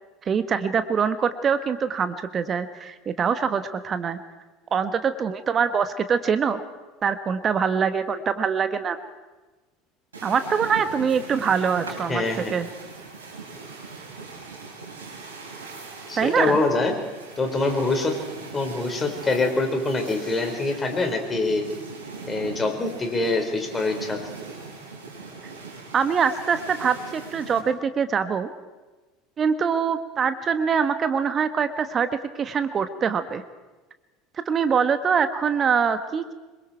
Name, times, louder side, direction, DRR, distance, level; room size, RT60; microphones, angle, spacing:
voice 1, 0.2-4.2 4.7-6.6 7.0-9.0 10.2-12.7 16.2-16.6 25.9-28.5 29.4-32.1 32.4-33.4 34.5-36.3, right 6 dB, 35° right, 11 dB, 1.3 m, -24 dB
sound 1, 10.1-27.6, right 4 dB, 80° right, 5.0 m, -40 dB
voice 2, 12.1-12.5 16.1-16.9 17.4-18.1 18.5-21.7 22.3-24.2, left 3 dB, 25° left, 4 dB, 4.7 m, -24 dB
26.0 x 22.5 x 4.5 m, 1.2 s
figure-of-eight pair, 70°, 0 cm